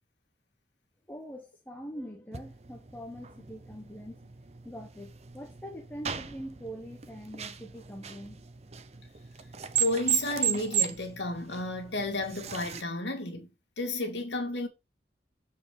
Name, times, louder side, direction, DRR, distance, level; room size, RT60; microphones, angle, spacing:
voice 1, 1.1-4.3 4.6-8.4, equal, 10° left, 0.9 m, -43 dB
sound 1, 2.3-12.8, right 9 dB, 40° right, 0.7 m, -36 dB
voice 2, 9.8-13.5 13.8-14.7, left 2 dB, 85° left, 2.2 m, -32 dB
7.3 x 4.6 x 4.7 m
head